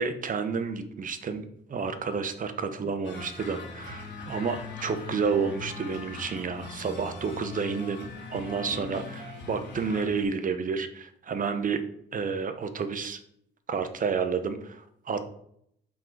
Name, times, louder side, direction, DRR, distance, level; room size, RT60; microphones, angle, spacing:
voice 1, 0.0-1.4 1.7-11.8 12.1-13.2 13.7-15.2, right 5 dB, 40° right, 9 dB, 0.9 m, -30 dB
sound 1, 3.0-10.2, left 4 dB, 65° left, 2.2 m, -41 dB
7.4 x 3.8 x 4.6 m, 0.70 s
cardioid pair, 90°, 20 cm